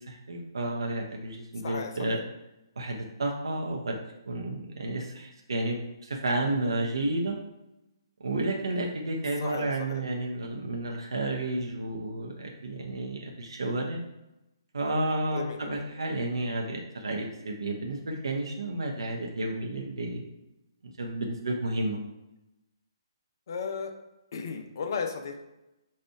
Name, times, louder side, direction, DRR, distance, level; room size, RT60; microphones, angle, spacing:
voice 1, 0.1-2.2 2.8-4.0 4.3-7.4 8.2-14.0 14.7-20.3 21.0-22.0, right 2 dB, 70° right, 0 dB, 0.7 m, -31 dB
voice 2, 1.6-2.2 9.2-10.0 15.2-15.8 23.5-24.0 24.3-25.4, left 5 dB, 55° left, 4 dB, 0.7 m, -35 dB
4.2 x 2.5 x 4.6 m, 0.94 s
figure-of-eight pair, 135°, 3 cm